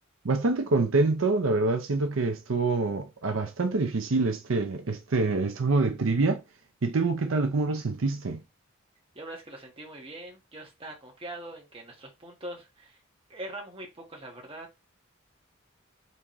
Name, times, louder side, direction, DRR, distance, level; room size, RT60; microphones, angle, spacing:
voice 1, 0.2-6.4 6.8-8.4, right 3 dB, 75° right, 0.7 m, -26 dB
voice 2, 9.1-13.0 13.3-14.7, right 1 dB, 25° right, 1.4 m, -42 dB
4.1 x 3.5 x 3.1 m
head